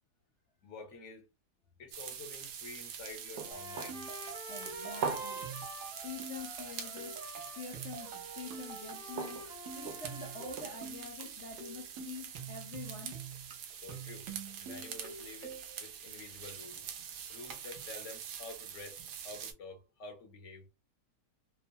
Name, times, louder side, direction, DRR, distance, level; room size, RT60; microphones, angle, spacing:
voice 1, 0.6-1.3 1.8-4.0 13.7-14.3 14.6-16.8 17.3-20.7, left 3 dB, 55° left, 0.9 m, -49 dB
sound 1, 1.9-19.5, right 7 dB, 85° right, 1.2 m, -43 dB
Trumpet, 3.3-10.7, right 1 dB, 40° right, 0.4 m, -48 dB
sound 2, 3.5-15.8, right 6 dB, 60° right, 0.9 m, -47 dB
voice 2, 4.5-5.5 6.0-7.2 7.6-9.5 9.7-13.2, left 5 dB, 80° left, 0.6 m, -46 dB
2.9 x 2.0 x 2.6 m
omnidirectional pair, 1.7 m